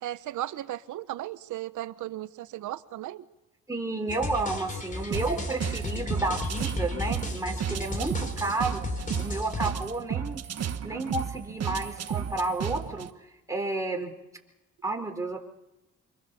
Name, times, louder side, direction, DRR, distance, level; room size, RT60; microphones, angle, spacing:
voice 1, 0.0-3.2, right 14 dB, 80° right, 13 dB, 1.1 m, -36 dB
voice 2, 3.7-8.9 9.2-10.4 10.8-13.1 13.5-14.1 14.8-15.4, right 2 dB, 10° right, 2 dB, 4.3 m, -31 dB
sound 1, 4.1-9.7, left 2 dB, 25° left, 3.9 m, -34 dB
sound 2, 5.1-13.1, right 9 dB, 55° right, 1.4 m, -33 dB
26.5 x 22.0 x 7.1 m, 0.98 s
cardioid pair, 90°, 30 cm